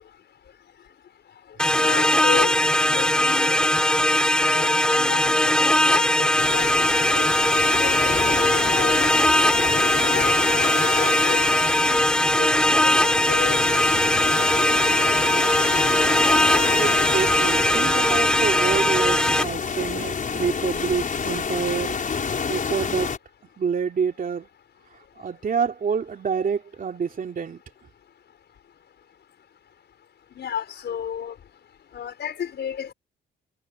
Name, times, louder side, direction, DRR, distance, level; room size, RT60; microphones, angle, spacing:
sound 1, 1.6-19.4, left 1 dB, 5° left, 3.6 m, -20 dB
voice 1, 1.8-3.6 4.1-7.3 7.8-9.1 9.7-12.0 12.4-13.6 30.4-31.3 31.9-32.9, left 8 dB, 60° left, 5.3 m, -32 dB
sound 2, 6.4-23.2, left 6 dB, 40° left, 5.6 m, -29 dB
voice 2, 16.8-22.0 22.5-23.1 23.6-24.5 25.2-27.6, right 6 dB, 45° right, 3.1 m, -27 dB
cardioid pair, 90°, 20 cm